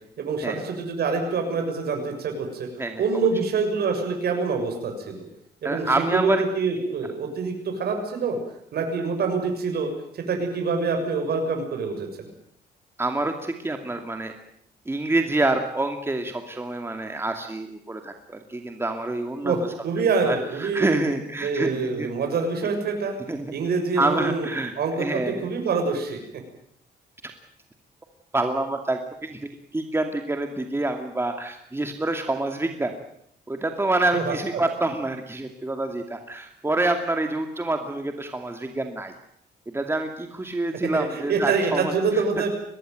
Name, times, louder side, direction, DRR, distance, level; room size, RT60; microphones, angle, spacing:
voice 1, 0.2-2.7 3.0-5.3 5.6-8.4 8.7-12.3 19.4-19.6 19.8-21.0 21.4-23.2 23.5-24.5 24.8-26.2 34.1-34.3 40.9-42.5, right 4 dB, 70° right, 4 dB, 6.7 m, -26 dB
voice 2, 2.8-3.3 5.6-6.4 13.0-14.3 14.9-19.7 20.3-22.1 23.3-23.5 24.0-25.5 27.2-27.3 28.3-29.4 29.7-32.9 33.5-39.1 39.7-42.2, right 2 dB, 15° right, 5 dB, 2.5 m, -27 dB
23.0 x 19.0 x 9.3 m, 0.71 s
cardioid pair, 105°, 17 cm